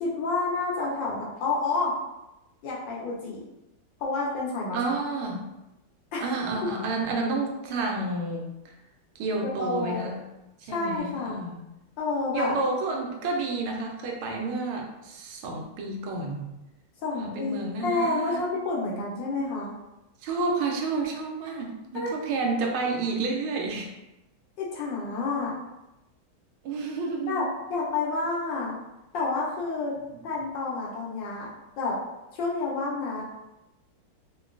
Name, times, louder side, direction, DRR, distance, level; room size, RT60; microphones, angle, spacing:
voice 1, 0.0-1.9 2.6-3.4 4.0-4.8 6.1-6.3 9.4-10.1 10.6-11.4 12.0-12.6 17.0-17.6 17.8-19.7 21.9-22.1 24.6-25.6 27.3-28.8 29.1-29.9 30.2-31.5 31.8-32.0 32.3-33.2, left 3 dB, 70° left, -4 dB, 1.2 m, -29 dB
voice 2, 4.7-5.5 6.2-8.5 9.2-10.1 10.7-11.6 12.3-16.4 17.2-18.5 20.2-23.9 26.6-27.5, right 3 dB, 75° right, 1 dB, 1.4 m, -30 dB
3.6 x 2.2 x 2.4 m, 0.94 s
omnidirectional pair, 2.4 m